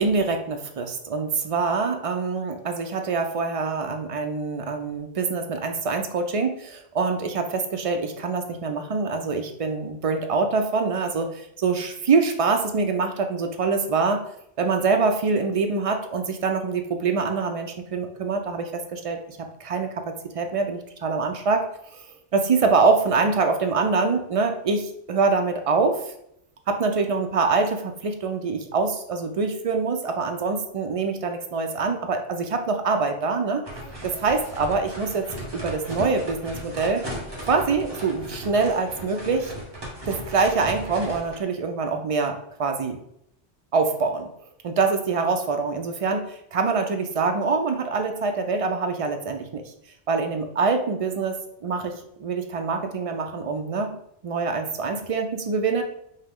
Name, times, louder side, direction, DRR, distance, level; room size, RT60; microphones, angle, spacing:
voice 1, 0.0-14.2 14.6-21.7 22.3-26.0 26.7-33.6 34.0-35.3 35.5-37.0 37.5-39.5 40.1-43.0 43.7-44.3 44.6-49.6 50.1-53.9 54.2-55.8, right 4 dB, 55° right, 5 dB, 0.4 m, -25 dB
sound 1, 33.6-41.4, right 1 dB, 20° right, 1.1 m, -37 dB
5.4 x 2.0 x 3.6 m, 0.74 s
omnidirectional pair, 1.2 m